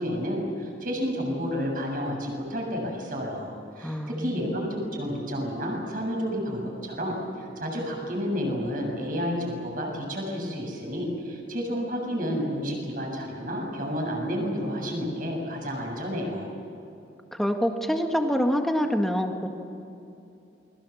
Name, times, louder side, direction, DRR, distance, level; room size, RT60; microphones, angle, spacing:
voice 1, 0.0-16.5, equal, 50° right, 0 dB, 7.3 m, -30 dB
voice 2, 3.8-4.5 17.3-19.5, equal, ahead, 3 dB, 1.8 m, -26 dB
28.5 x 22.5 x 7.3 m, 2.8 s
head